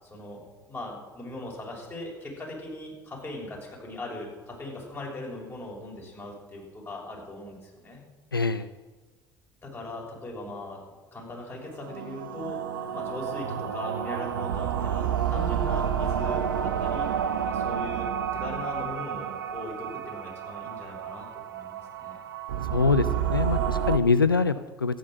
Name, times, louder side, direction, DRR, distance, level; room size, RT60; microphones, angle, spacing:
voice 1, 0.0-8.0 9.6-10.8 11.1-12.6 12.9-17.1 17.4-22.2, left 2 dB, 20° left, -2 dB, 6.3 m, -39 dB
voice 2, 8.3-8.7 22.7-25.0, left 4 dB, 90° left, 12 dB, 0.4 m, -24 dB
sound 1, 11.7-24.0, right 8 dB, 70° right, 0.7 m, -30 dB
14.0 x 10.0 x 7.9 m, 1.3 s
figure-of-eight pair, 60°, 11 cm